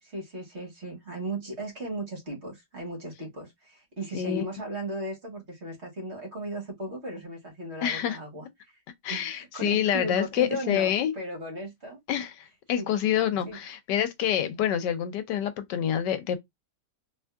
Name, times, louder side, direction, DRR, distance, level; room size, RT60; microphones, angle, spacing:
voice 1, 0.0-8.4 9.1-12.0 12.8-12.9 13.5-13.6 14.4-14.5, right 1 dB, 40° right, 1.4 m, -36 dB
voice 2, 4.1-4.4 7.8-8.2 9.0-11.1 12.1-16.4, left 9 dB, 85° left, 1.2 m, -27 dB
3.5 x 3.0 x 2.2 m
omnidirectional pair, 1.9 m